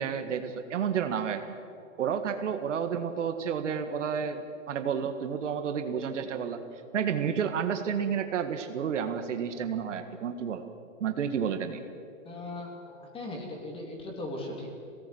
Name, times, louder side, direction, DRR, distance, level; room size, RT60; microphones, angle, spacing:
voice 1, 0.0-1.4 2.0-4.4 4.7-6.6 6.9-10.6 11.0-11.8, right 7 dB, 65° right, 7 dB, 1.8 m, -30 dB
voice 2, 12.3-14.7, left 2 dB, 15° left, 1 dB, 3.4 m, -38 dB
21.0 x 18.0 x 7.9 m, 2.5 s
hypercardioid pair, 150°, 40 cm